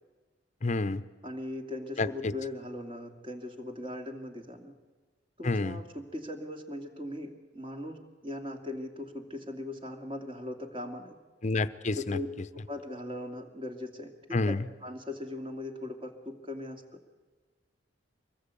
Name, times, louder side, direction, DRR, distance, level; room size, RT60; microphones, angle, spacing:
voice 1, 0.6-1.0 2.0-2.1 5.4-5.8 11.4-12.2 14.3-14.6, left 3 dB, 40° left, 13 dB, 0.8 m, -28 dB
voice 2, 1.2-4.7 5.4-11.1 12.0-12.3 12.5-14.5 14.8-16.8, left 1 dB, 30° right, 4 dB, 2.5 m, -39 dB
24.0 x 19.5 x 8.4 m, 1.3 s
head